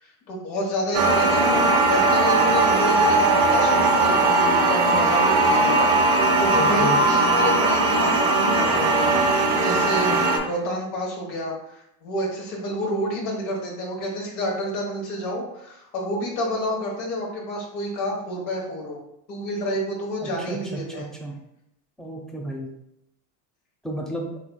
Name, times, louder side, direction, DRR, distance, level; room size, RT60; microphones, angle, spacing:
voice 1, 0.0-19.0 19.3-21.1, equal, 70° left, -2 dB, 1.3 m, -29 dB
sound 1, 0.9-10.4, right 2 dB, 75° right, 0.9 m, -19 dB
voice 2, 6.5-7.0 20.2-21.3 22.0-22.7 23.8-24.3, right 1 dB, ahead, 0 dB, 0.6 m, -32 dB
3.5 x 3.2 x 2.2 m, 0.80 s
hypercardioid pair, 85°, 48 cm